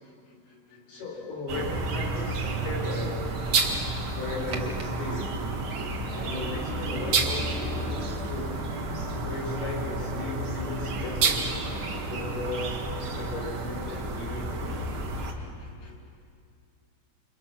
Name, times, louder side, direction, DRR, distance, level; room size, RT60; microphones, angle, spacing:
voice 1, 0.1-1.0 3.6-3.8 5.9-6.4 9.1-9.2 13.2-13.3 15.2-16.0, left 3 dB, 80° left, -2 dB, 6.4 m, -55 dB
voice 2, 0.9-3.2 4.1-5.3 6.1-8.6 9.2-14.8, left 3 dB, 50° left, -1 dB, 7.0 m, -36 dB
sound 1, 1.5-15.3, right 3 dB, 70° right, 1.2 m, -30 dB
29.0 x 28.5 x 6.0 m, 2.3 s
omnidirectional pair, 5.7 m